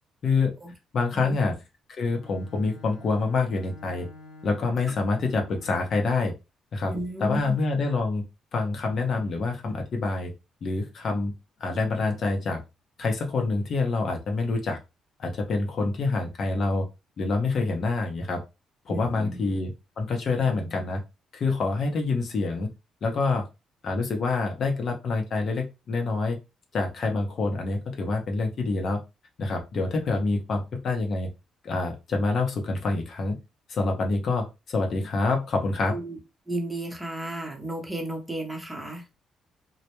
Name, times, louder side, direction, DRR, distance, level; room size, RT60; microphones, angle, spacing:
voice 1, 0.2-0.5 0.9-1.6 1.9-4.1 4.4-6.3 6.7-6.9 7.2-8.2 8.5-10.3 10.6-11.3 11.6-12.6 13.0-14.8 15.2-16.9 17.2-18.4 18.9-19.7 20.0-21.0 21.3-22.7 23.0-23.5 23.8-26.4 26.7-29.0 29.4-31.3 31.6-33.4 33.7-36.0, left 3 dB, 55° left, 0.6 m, -26 dB
Bowed string instrument, 2.0-6.1, left 2 dB, 75° left, 1.0 m, -48 dB
voice 2, 6.9-7.6 18.9-19.5 35.9-36.2 36.5-39.1, right 1 dB, 10° right, 0.7 m, -33 dB
2.1 x 2.0 x 2.9 m
cardioid pair, 90°, 0 cm